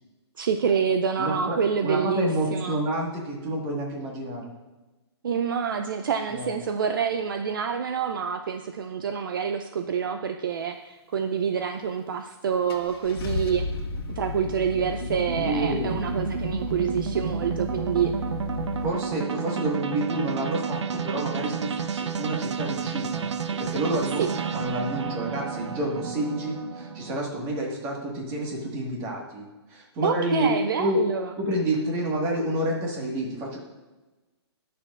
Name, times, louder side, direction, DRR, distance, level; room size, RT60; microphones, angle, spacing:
voice 1, 0.4-2.8 5.2-13.7 14.2-18.1 24.2-24.3 30.0-31.3, right 7 dB, 50° right, 7 dB, 0.5 m, -27 dB
voice 2, 1.2-1.6 1.8-4.5 6.3-6.5 15.3-16.0 18.8-23.3 23.6-24.2 24.5-29.4 29.7-30.5 30.8-31.0 31.4-33.6, right 1 dB, 20° right, -1 dB, 1.6 m, -29 dB
Car / Engine starting, 12.0-12.1 12.7-18.9, left 5 dB, 60° left, 1.5 m, -34 dB
sound 1, 13.0-27.2, right 6 dB, 85° right, 0.7 m, -31 dB
19.0 x 6.8 x 2.5 m, 1.1 s
hypercardioid pair, 165°, 14 cm